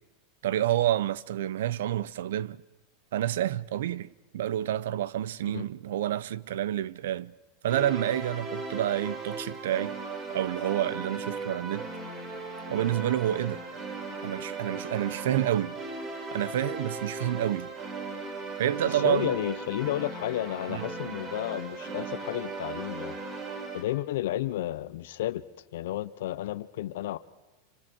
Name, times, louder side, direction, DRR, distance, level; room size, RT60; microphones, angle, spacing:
voice 1, 0.4-2.6 3.1-7.3 7.6-9.9 10.3-11.9 12.7-13.6 14.2-15.8 16.3-17.7 18.6-19.3 20.7-20.9, right 12 dB, 85° right, 0.7 m, -29 dB
sound 1, 7.7-23.8, right 3 dB, 30° right, 4.3 m, -37 dB
voice 2, 18.9-23.2 23.7-25.4 25.7-27.2, left 14 dB, 75° left, 0.8 m, -32 dB
27.5 x 25.5 x 4.6 m
supercardioid pair, 160°, 0 cm